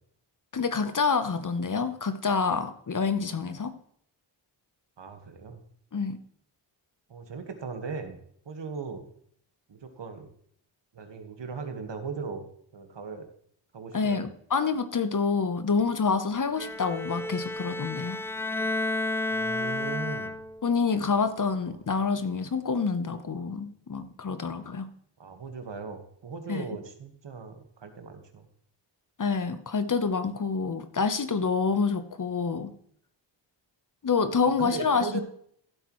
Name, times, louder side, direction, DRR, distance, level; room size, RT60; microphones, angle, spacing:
voice 1, 0.5-3.7 5.9-6.2 13.9-18.2 20.6-24.9 26.5-26.6 29.2-32.7 34.0-35.2, left 5 dB, 40° left, 10 dB, 1.0 m, -27 dB
voice 2, 5.0-5.6 7.1-8.2 8.4-9.0 9.7-10.3 10.9-12.5 12.7-13.3 13.7-14.2 19.3-20.3 25.2-28.5 34.4-35.2, right 5 dB, 60° right, 6 dB, 1.7 m, -38 dB
Bowed string instrument, 16.6-20.7, left 2 dB, 5° left, 0.4 m, -31 dB
15.0 x 8.1 x 3.2 m, 0.64 s
cardioid pair, 60°, 48 cm